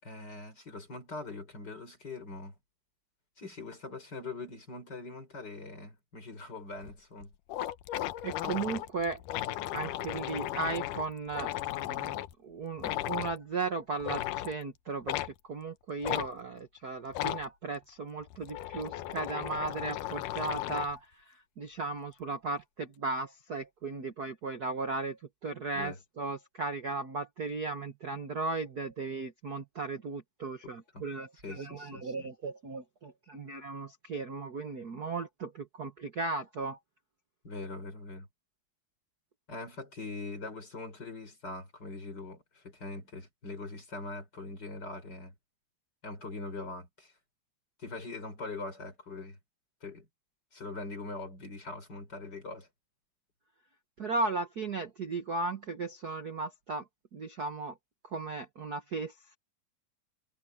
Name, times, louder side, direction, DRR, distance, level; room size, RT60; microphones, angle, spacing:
voice 1, 0.0-2.5 3.4-7.3 25.7-26.0 30.6-31.0 31.4-32.3 37.4-38.3 39.5-45.3 46.0-47.1 47.8-49.4 49.8-50.1 50.5-52.7, left 3 dB, 30° left, 5.3 m, -42 dB
sound 1, 6.8-6.9 7.2-7.3 7.5-12.3 12.8-13.4 14.0-14.5 15.1-15.3 16.0-16.3 17.1-17.5 18.2-21.0, left 13 dB, 80° left, 2.4 m, -35 dB
voice 2, 8.2-9.2 9.7-36.8 54.0-57.8 58.0-59.4, right 3 dB, 60° right, 1.0 m, -36 dB
omnidirectional pair, 3.8 m